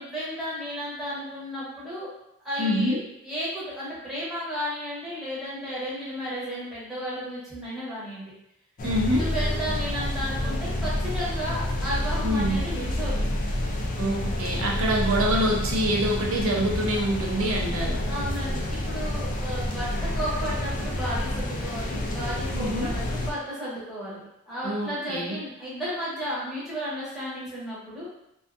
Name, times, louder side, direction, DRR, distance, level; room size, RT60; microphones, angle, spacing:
voice 1, 0.0-2.1 2.4-3.0 3.2-8.3 9.1-13.2 18.1-28.1, equal, ahead, -10 dB, 0.9 m, -33 dB
voice 2, 2.6-3.0 8.8-9.2 12.2-12.6 14.0-18.0 22.5-22.9 24.6-25.4, equal, 75° right, -1 dB, 0.6 m, -25 dB
sound 1, 8.8-23.3, left 1 dB, 40° left, 0.3 m, -29 dB
2.6 x 2.2 x 2.4 m, 0.80 s
head